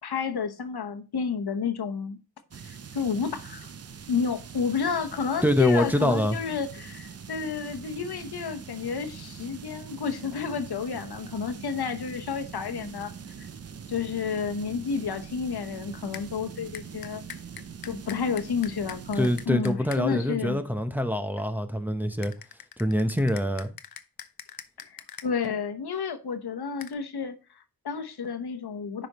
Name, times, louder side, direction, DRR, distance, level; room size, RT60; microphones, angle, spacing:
voice 1, 0.0-2.2 2.6-3.7 4.1-13.1 13.4-13.5 13.9-17.2 17.8-20.6 24.8-29.1, left 6 dB, 85° left, 1.0 m, -31 dB
sound 1, 2.5-19.5, right 6 dB, 40° right, 0.6 m, -43 dB
voice 2, 5.4-6.4 19.2-22.3 22.8-23.7, equal, 5° right, 0.7 m, -25 dB
sound 2, 16.1-16.3 16.7-20.0 22.2-25.3 26.8-26.9, left 8 dB, 70° left, 0.7 m, -43 dB
10.0 x 5.2 x 3.0 m
wide cardioid pair, 105°, 38 cm